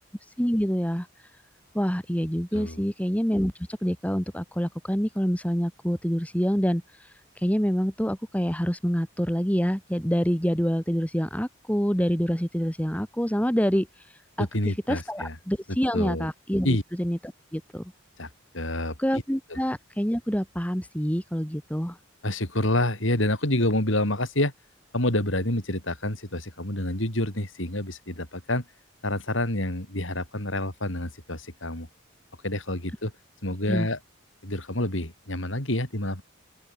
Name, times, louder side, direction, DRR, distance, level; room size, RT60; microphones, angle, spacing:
voice 1, 0.4-1.1 1.7-3.5 3.8-6.8 7.4-13.9 14.4-14.5 14.9-17.2 17.5-17.9 19.0-22.0 33.7-33.9, equal, 5° left, 2.6 m, -26 dB
voice 2, 14.4-15.4 15.9-16.3 16.6-16.8 18.2-18.3 18.5-19.0 19.5-19.6 22.2-24.5 24.9-28.6 29.0-31.9 32.4-33.1 33.4-34.0 34.4-36.2, left 1 dB, 70° left, 6.5 m, -28 dB
open air
head